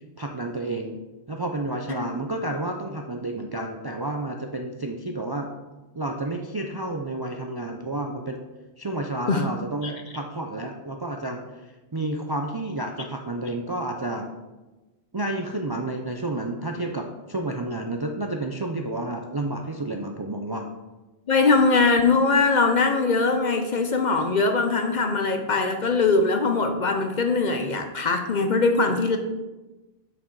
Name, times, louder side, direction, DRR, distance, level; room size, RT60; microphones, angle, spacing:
voice 1, 0.2-1.0 1.3-5.5 6.0-8.4 8.8-11.4 11.9-14.3 15.1-20.7, right 2 dB, 35° right, 3 dB, 0.4 m, -30 dB
voice 2, 21.3-29.2, left 3 dB, 50° left, 6 dB, 0.7 m, -21 dB
6.3 x 6.1 x 4.6 m, 1.1 s
omnidirectional pair, 1.1 m